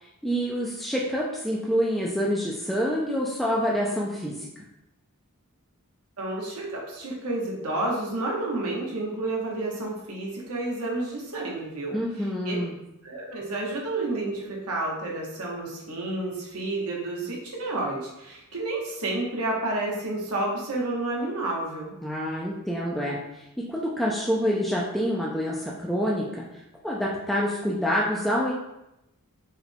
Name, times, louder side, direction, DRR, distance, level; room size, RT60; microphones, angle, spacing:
voice 1, 0.0-4.5 11.9-12.8 22.0-28.5, equal, ahead, -5 dB, 0.3 m, -27 dB
voice 2, 6.2-12.6 13.0-21.9, right 2 dB, 75° right, -2 dB, 1.0 m, -30 dB
4.7 x 2.2 x 3.3 m, 0.90 s
head